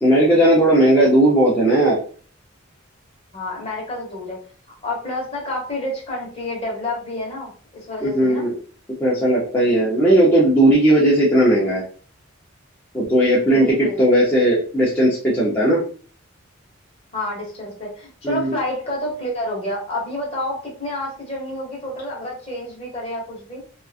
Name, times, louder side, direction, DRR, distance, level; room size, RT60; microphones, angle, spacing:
voice 1, 0.0-2.0 8.0-8.5 9.0-11.8 12.9-15.8 18.2-18.5, right 1 dB, 10° left, -8 dB, 0.6 m, -16 dB
voice 2, 3.3-4.4 4.7-8.4 13.4-14.0 17.1-23.6, left 1 dB, 30° left, -3 dB, 1.1 m, -29 dB
2.9 x 2.3 x 2.4 m, 0.43 s
head